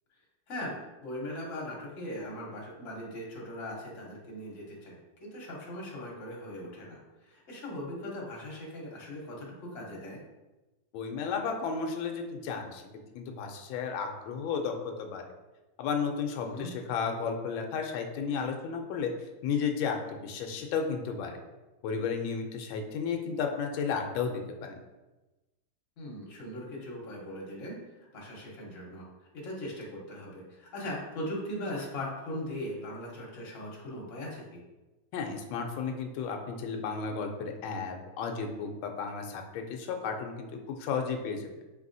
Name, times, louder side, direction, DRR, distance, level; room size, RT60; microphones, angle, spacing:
voice 1, 0.5-10.2 16.4-16.7 26.0-27.8 28.1-29.0 29.3-34.6, left 1 dB, 45° left, -3 dB, 1.1 m, -39 dB
voice 2, 10.9-12.8 13.1-15.2 15.8-19.1 19.4-21.4 21.8-24.8 35.1-41.5, left 5 dB, 75° left, 3 dB, 1.3 m, -33 dB
4.7 x 3.3 x 2.6 m, 1.1 s
omnidirectional pair, 2.3 m